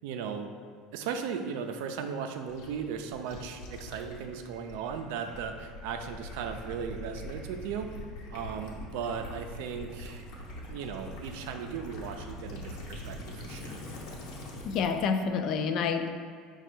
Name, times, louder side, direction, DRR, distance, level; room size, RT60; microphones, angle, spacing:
voice 1, 0.0-0.5 0.9-7.9 8.3-10.3 10.7-13.8, right 6 dB, 80° right, 6 dB, 0.4 m, -37 dB
Gurgling / Liquid, 2.5-15.1, left 1 dB, 75° left, 1.0 m, -43 dB
voice 2, 14.6-16.1, left 6 dB, 55° left, 7 dB, 0.4 m, -28 dB
5.0 x 2.3 x 4.4 m, 2.1 s
supercardioid pair, 115°, 0 cm